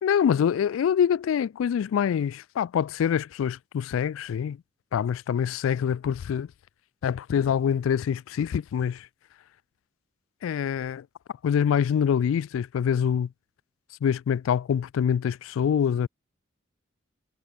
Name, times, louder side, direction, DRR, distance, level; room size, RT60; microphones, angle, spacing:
voice 1, 0.0-4.6 4.9-6.5 7.0-9.1 10.4-11.1 11.4-13.3 14.0-16.1, left 8 dB, 85° left, 0.3 m, -25 dB
head